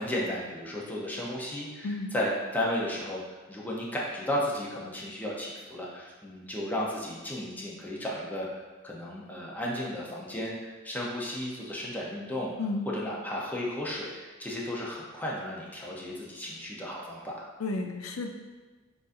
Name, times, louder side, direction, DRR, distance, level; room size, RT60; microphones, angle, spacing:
voice 1, 0.0-3.2 3.5-8.5 8.8-10.5 10.8-12.5 12.9-17.3, left 1 dB, 10° left, -4 dB, 0.6 m, -34 dB
voice 2, 17.6-18.3, left 3 dB, 85° left, 4 dB, 0.4 m, -32 dB
6.5 x 2.6 x 2.5 m, 1.3 s
head